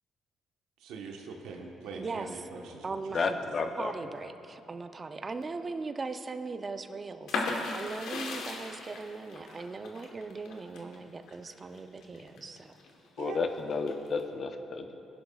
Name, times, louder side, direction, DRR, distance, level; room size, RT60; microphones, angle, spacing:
voice 1, 0.8-3.2 13.2-13.4, right 4 dB, 85° right, 1 dB, 1.2 m, -42 dB
voice 2, 1.9-2.3 2.8-3.4 3.8-7.5 7.7-12.7, right 4 dB, 35° right, 8 dB, 0.6 m, -39 dB
voice 3, 3.1-3.9 13.2-15.0, left 4 dB, 50° left, 7 dB, 0.8 m, -32 dB
sound 1, 7.3-12.9 13.4-14.2, left 3 dB, 75° left, 1.3 m, -37 dB
18.0 x 10.5 x 2.4 m, 2.8 s
supercardioid pair, 65°, 0 cm